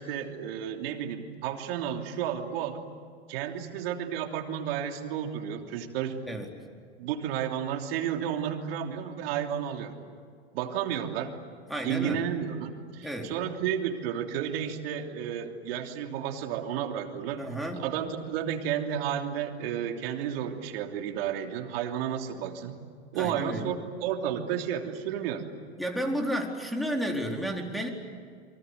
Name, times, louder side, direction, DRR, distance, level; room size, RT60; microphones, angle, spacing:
voice 1, 0.0-2.8 3.3-6.4 7.0-9.9 10.5-11.3 11.8-17.5 17.8-22.8 23.1-25.4, right 9 dB, 60° right, 4 dB, 3.2 m, -32 dB
voice 2, 11.7-12.2 13.0-13.3 17.4-17.8 23.2-23.7 25.8-27.9, equal, ahead, 0 dB, 4.2 m, -32 dB
27.5 x 24.5 x 8.2 m, 2.1 s
hypercardioid pair, 105°, 33 cm